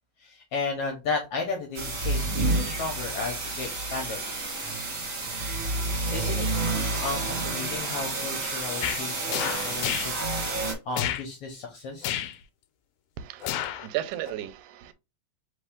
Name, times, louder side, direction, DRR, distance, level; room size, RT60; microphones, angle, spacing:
voice 1, 0.2-5.0 5.9-6.6 7.0-12.2, left 4 dB, 65° left, 1.6 m, -34 dB
sound 1, 1.7-10.7, right 2 dB, 35° right, 1.3 m, -29 dB
sound 2, 8.8-9.0 9.3-10.1 10.9-11.2 12.0-12.4 13.4-13.9 14.3-14.4, left 11 dB, 85° left, 1.9 m, -30 dB
voice 2, 13.2-14.9, right 13 dB, 90° right, 2.0 m, -35 dB
4.1 x 3.5 x 3.6 m
omnidirectional pair, 3.3 m